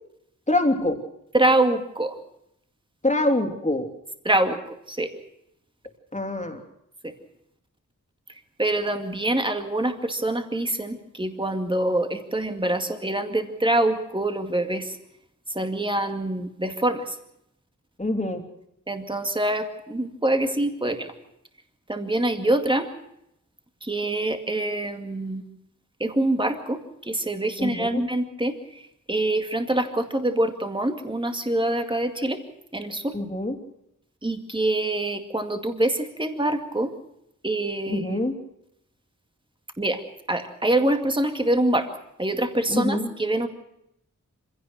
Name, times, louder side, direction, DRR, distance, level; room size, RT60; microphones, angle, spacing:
voice 1, 0.5-1.0 3.0-3.9 6.1-6.6 18.0-18.4 27.6-28.0 33.1-33.6 37.9-38.4 42.7-43.1, left 1 dB, 25° left, 4 dB, 3.2 m, -25 dB
voice 2, 1.3-2.2 4.2-5.1 7.0-7.1 8.6-15.0 15.5-17.2 18.9-21.1 21.9-22.9 23.8-25.4 26.0-28.8 29.1-32.4 32.7-33.2 34.2-36.9 37.4-38.2 39.8-40.0 40.3-41.9 42.2-43.5, right 1 dB, 15° right, 6 dB, 2.2 m, -25 dB
25.5 x 17.0 x 6.5 m, 0.79 s
wide cardioid pair, 85°, 31 cm